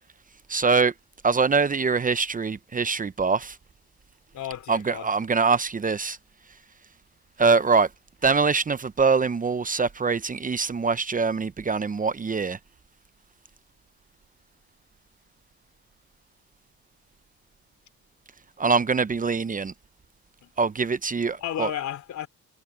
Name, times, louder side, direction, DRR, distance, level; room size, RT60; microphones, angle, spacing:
voice 1, 0.5-0.9 1.2-3.6 4.7-6.2 7.4-7.9 8.2-12.6 18.6-19.7 20.6-21.7, right 4 dB, 25° right, 0.8 m, -23 dB
voice 2, 4.3-5.1 20.4-20.5 21.4-22.3, left 10 dB, 70° left, 3.5 m, -33 dB
cardioid pair, 90°, 30 cm